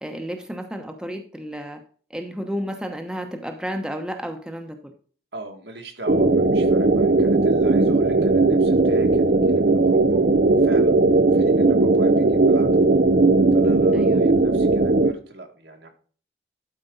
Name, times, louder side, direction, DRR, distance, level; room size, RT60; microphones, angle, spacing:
voice 1, 0.0-1.8 2.1-4.9 13.9-14.2, equal, 5° right, 4 dB, 1.0 m, -32 dB
voice 2, 5.3-10.2 10.6-12.7 13.5-15.9, right 2 dB, 85° right, 3 dB, 2.1 m, -40 dB
sound 1, 6.1-15.1, right 3 dB, 50° right, 0.7 m, -18 dB
12.0 x 5.2 x 3.9 m, 0.43 s
head